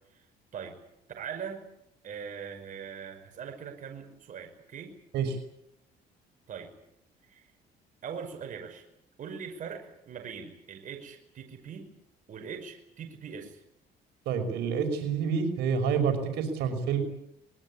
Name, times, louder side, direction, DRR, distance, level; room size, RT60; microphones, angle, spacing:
voice 1, 1.2-1.7 2.0-4.9 6.5-6.7 7.3-7.4 8.0-8.8 9.2-11.9 12.3-13.6, right 7 dB, 50° right, 4 dB, 5.6 m, -41 dB
voice 2, 14.3-17.0, right 6 dB, 80° right, 5 dB, 5.8 m, -28 dB
24.0 x 22.0 x 8.7 m, 0.79 s
cardioid pair, 110°, 17 cm